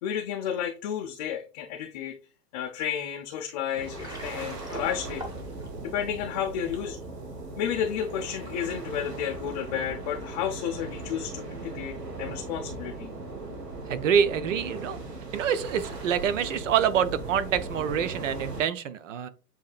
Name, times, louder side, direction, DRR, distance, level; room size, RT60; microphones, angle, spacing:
voice 1, 0.0-2.2 2.5-5.2 5.8-7.0 7.6-13.1, left 9 dB, 30° left, 0.5 m, -32 dB
sound 1, 3.7-18.6, right 2 dB, 85° right, 1.1 m, -38 dB
Water, 3.8-6.9, right 1 dB, 10° right, 0.9 m, -43 dB
voice 2, 13.9-15.0 15.3-19.3, right 8 dB, 55° right, 0.6 m, -26 dB
7.0 x 2.8 x 2.3 m
figure-of-eight pair, 105°, 47 cm